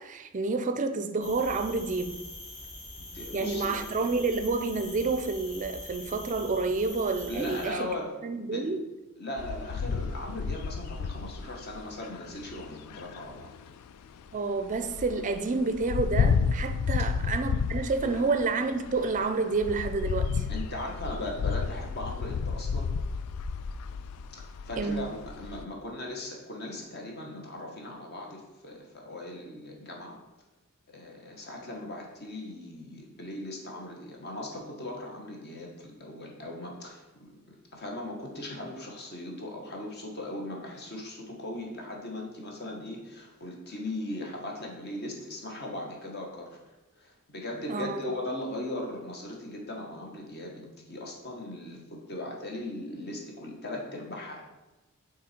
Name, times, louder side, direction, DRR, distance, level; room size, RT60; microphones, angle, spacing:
voice 1, 0.0-2.2 3.3-7.9 8.2-8.8 14.3-20.5 24.8-25.1 47.7-48.1, right 3 dB, 35° right, 8 dB, 0.4 m, -29 dB
sound 1, 1.2-7.7, left 1 dB, 30° left, 1.1 m, -43 dB
voice 2, 3.0-3.8 7.3-8.2 8.5-8.8 9.2-13.5 18.0-18.1 20.5-22.9 24.3-30.2 30.9-46.6 47.0-54.4, left 1 dB, 45° left, 0 dB, 1.2 m, -38 dB
sound 2, 9.4-14.3 14.6-25.6, left 5 dB, 90° left, 0.3 m, -32 dB
6.3 x 3.9 x 4.3 m, 1.1 s
head